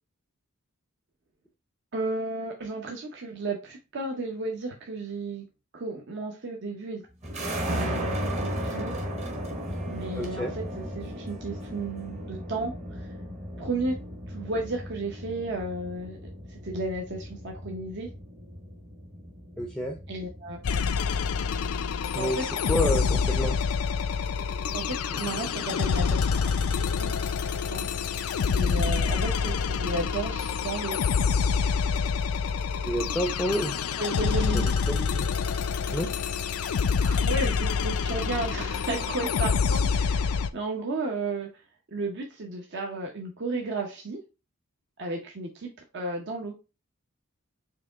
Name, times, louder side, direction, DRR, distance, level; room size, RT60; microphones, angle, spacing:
voice 1, 1.9-5.4 5.7-7.0 7.7-9.0 9.9-13.1 13.6-14.0 14.3-16.2 16.5-18.1 20.1-21.0 22.2-22.5 24.7-28.3 28.5-31.0 34.0-34.8 37.0-41.5 41.9-44.2 45.0-46.5, right 2 dB, 55° right, 0 dB, 0.7 m, -33 dB
sound 1, 7.2-20.8, equal, 35° right, 1.0 m, -35 dB
voice 2, 10.2-10.5 19.6-20.0 22.1-23.6 32.8-33.8 34.5-35.3 35.9-36.1, equal, 5° left, 3 dB, 0.4 m, -29 dB
sound 2, 20.6-40.5, left 6 dB, 90° left, 0.4 m, -27 dB
4.8 x 2.9 x 3.4 m, 0.30 s
head